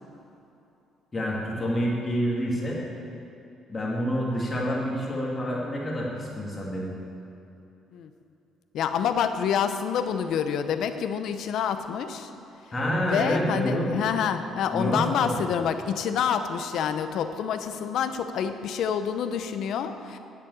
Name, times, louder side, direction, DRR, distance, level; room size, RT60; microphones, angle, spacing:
voice 1, 1.1-2.8 3.7-6.9 12.7-14.0 14.7-15.3, equal, 20° left, -4 dB, 2.6 m, -27 dB
voice 2, 8.7-12.3 13.0-20.2, left 8 dB, 65° left, 9 dB, 0.8 m, -27 dB
9.8 x 8.5 x 8.7 m, 2.8 s
cardioid pair, 155°, 0 cm